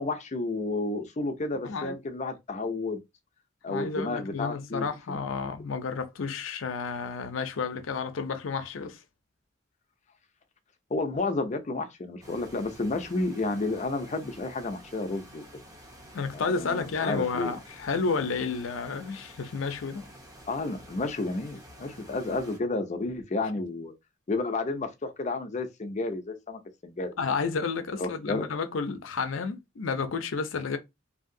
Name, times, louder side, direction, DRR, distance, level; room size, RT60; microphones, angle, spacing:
voice 1, 0.0-3.0 3.6-5.2 10.9-15.4 16.3-17.5 20.5-23.9 24.3-27.1 28.0-28.5, left 2 dB, 35° left, 0.5 m, -31 dB
voice 2, 1.6-2.0 3.7-9.0 16.1-20.0 27.2-30.8, left 4 dB, 90° left, 0.5 m, -31 dB
sound 1, 12.2-22.6, equal, 20° right, 0.8 m, -50 dB
2.8 x 2.7 x 2.6 m
head